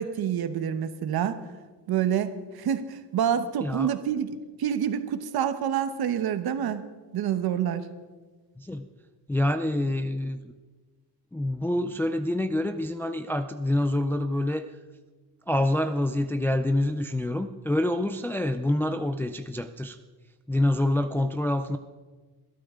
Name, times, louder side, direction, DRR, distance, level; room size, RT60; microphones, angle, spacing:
voice 1, 0.0-1.4 1.9-6.8 7.1-7.9, right 9 dB, 65° right, 10 dB, 1.1 m, -27 dB
voice 2, 3.6-3.9 8.6-8.9 9.3-10.4 11.3-14.6 15.5-20.0 20.5-21.8, left 1 dB, 5° left, 7 dB, 0.4 m, -26 dB
21.5 x 12.5 x 3.7 m, 1.3 s
cardioid pair, 150°, 41 cm